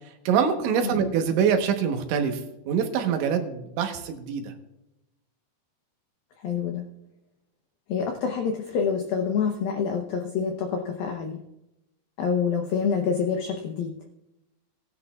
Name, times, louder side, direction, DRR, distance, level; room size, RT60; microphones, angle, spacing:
voice 1, 0.3-2.4 2.7-4.5, right 7 dB, 80° right, 5 dB, 3.4 m, -24 dB
voice 2, 6.4-6.9 7.9-11.4 12.2-14.0, left 6 dB, 80° left, 3 dB, 2.1 m, -27 dB
18.5 x 11.0 x 2.4 m, 0.89 s
omnidirectional pair, 5.4 m